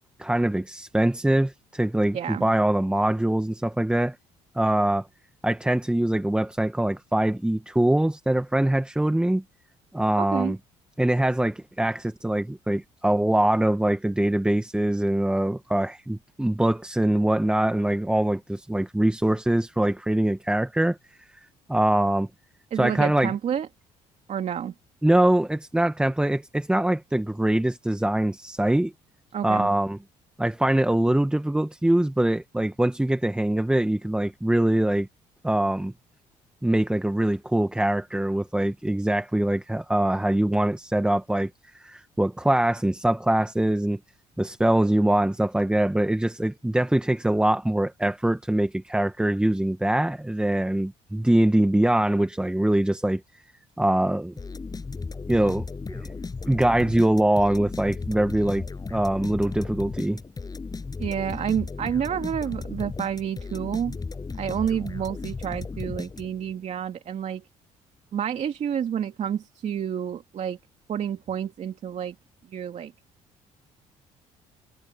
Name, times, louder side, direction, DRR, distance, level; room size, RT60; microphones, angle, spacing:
voice 1, 0.2-4.1 4.5-5.1 5.4-9.4 9.9-10.6 11.0-21.0 21.7-22.3 22.7-23.3 25.0-28.9 29.4-30.0 30.4-35.1 35.4-35.9 36.6-44.0 44.4-53.2 53.8-54.3 55.3-56.1 56.5-58.6 58.9-60.2, right 1 dB, 5° right, 1.3 m, -23 dB
voice 2, 2.1-2.5 10.2-10.5 22.7-23.7 24.3-24.7 29.3-29.7 61.0-64.0 64.4-67.4 68.1-70.6 70.9-72.1 72.5-72.9, right 9 dB, 55° right, 2.6 m, -29 dB
sound 1, 54.4-66.6, left 4 dB, 30° left, 7.4 m, -35 dB
supercardioid pair, 80°, 14 cm